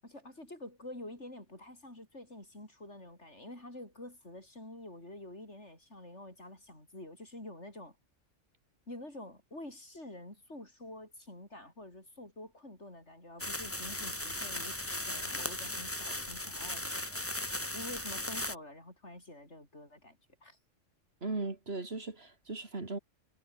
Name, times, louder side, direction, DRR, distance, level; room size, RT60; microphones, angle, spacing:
voice 1, 0.0-8.0 8.9-14.8 15.0-17.2 17.7-20.6, left 1 dB, 60° left, 8.1 m, -48 dB
sound 1, 13.4-18.5, left 1 dB, 10° left, 1.7 m, -37 dB
voice 2, 21.2-23.0, right 3 dB, 50° right, 2.9 m, -37 dB
omnidirectional pair, 1.3 m